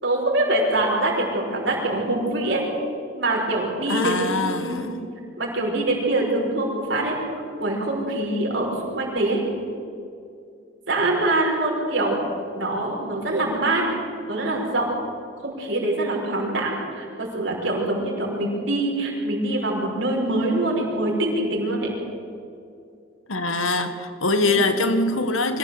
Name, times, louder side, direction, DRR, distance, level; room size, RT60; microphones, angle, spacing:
voice 1, 0.0-2.6 3.1-4.3 4.6-4.9 5.4-7.2 7.6-9.4 10.9-13.8 14.3-14.9 15.4-21.9 24.4-24.6, right 2 dB, 60° right, 5.7 m, -24 dB
voice 2, 3.9-5.1 23.3-25.6, left 2 dB, 85° left, 1.8 m, -23 dB
24.0 x 15.5 x 8.1 m
head